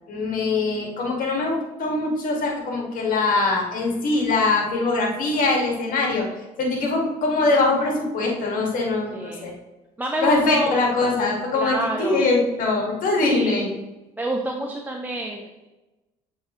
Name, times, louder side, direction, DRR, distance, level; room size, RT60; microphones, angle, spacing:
voice 1, 0.1-6.2 6.6-9.5 10.2-13.7, left 3 dB, 60° left, 0 dB, 2.1 m, -22 dB
voice 2, 9.1-9.5 10.0-10.7 11.5-12.2 13.2-13.7 14.2-15.7, right 1 dB, 10° right, 1 dB, 0.7 m, -28 dB
7.7 x 4.0 x 3.1 m, 1.1 s
supercardioid pair, 75°, 15 cm